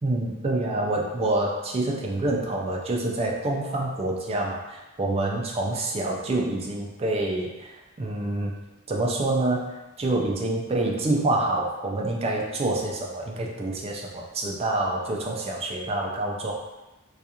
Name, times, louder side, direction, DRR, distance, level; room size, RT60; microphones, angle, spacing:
voice 1, 0.0-7.7 8.0-8.5 8.9-9.7 10.0-16.5, right 2 dB, 30° right, -1 dB, 0.4 m, -27 dB
2.4 x 2.3 x 2.8 m, 1.0 s
head